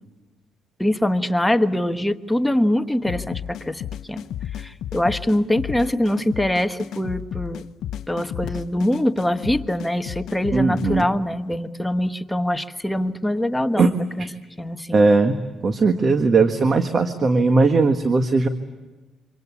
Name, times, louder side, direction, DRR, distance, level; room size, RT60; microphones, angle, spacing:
voice 1, 0.8-3.8 4.1-4.2 4.6-7.6 8.1-13.9 14.2-14.3 14.6-15.0, left 1 dB, 5° left, 8 dB, 1.2 m, -23 dB
sound 1, 3.1-11.0, left 10 dB, 75° left, 0.8 m, -33 dB
voice 2, 10.5-11.1 13.8-13.9 14.2-14.3 14.9-15.4 15.6-18.5, right 3 dB, 40° right, 7 dB, 1.6 m, -18 dB
26.5 x 26.0 x 8.4 m, 1.2 s
cardioid pair, 90°, 0 cm